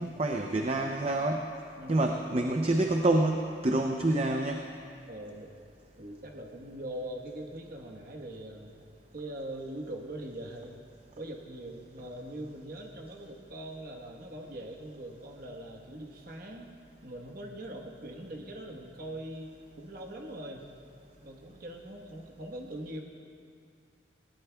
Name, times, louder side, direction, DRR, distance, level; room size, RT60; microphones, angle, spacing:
voice 1, 0.0-1.5 1.9-4.7, right 2 dB, 35° right, 3 dB, 0.6 m, -27 dB
voice 2, 5.1-5.5 6.0-8.7 9.1-10.8 11.2-16.7 17.0-20.6 21.2-23.0, right 1 dB, 50° right, 1 dB, 1.2 m, -42 dB
20.0 x 17.5 x 2.3 m, 2.3 s
head